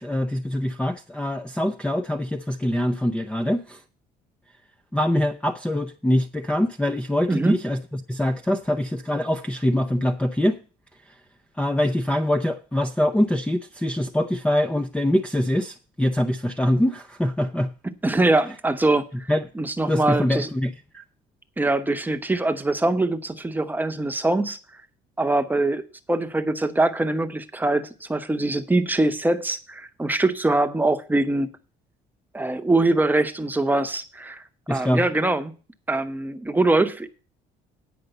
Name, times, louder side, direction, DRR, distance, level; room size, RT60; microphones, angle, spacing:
voice 1, 0.0-3.8 4.9-7.8 8.1-10.6 11.6-17.7 19.3-19.4 19.9-21.0 34.7-35.0, left 1 dB, 5° left, 0.6 m, -24 dB
voice 2, 18.0-20.5 21.6-24.6 25.2-25.8 26.1-31.5 32.3-34.4 34.7-35.5 35.9-37.1, right 2 dB, 10° right, 1.0 m, -23 dB
9.3 x 5.3 x 7.9 m
cardioid pair, 110°, 17 cm